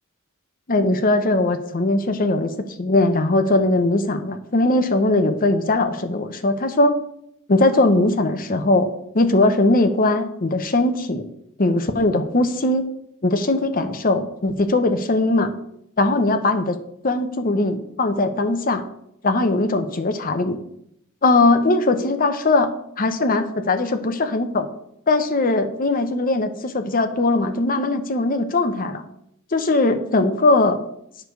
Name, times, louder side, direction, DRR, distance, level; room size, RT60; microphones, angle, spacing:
voice 1, 0.7-2.5 2.8-7.0 7.5-8.9 9.1-11.2 11.6-12.9 13.2-15.5 16.0-16.8 17.0-18.8 19.2-20.6 21.2-22.7 23.0-24.7 25.1-29.0 29.5-30.8, left 2 dB, 40° left, 8 dB, 0.8 m, -20 dB
9.0 x 4.7 x 6.6 m, 0.75 s
head